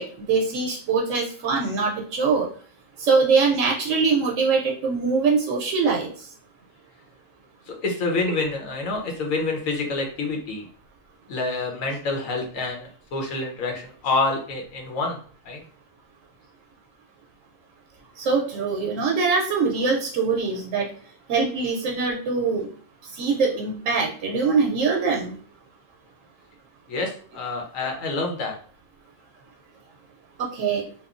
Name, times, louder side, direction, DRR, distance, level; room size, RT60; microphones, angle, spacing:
voice 1, 0.0-2.5 3.0-6.1 18.2-20.9 21.3-22.7 23.1-25.4 30.4-30.8, right 4 dB, 75° right, -1 dB, 0.9 m, -23 dB
voice 2, 7.7-10.6 11.3-15.2 15.4-15.6 26.9-28.6, left 3 dB, 85° left, 1 dB, 1.1 m, -27 dB
2.9 x 2.2 x 2.4 m, 0.44 s
omnidirectional pair, 1.4 m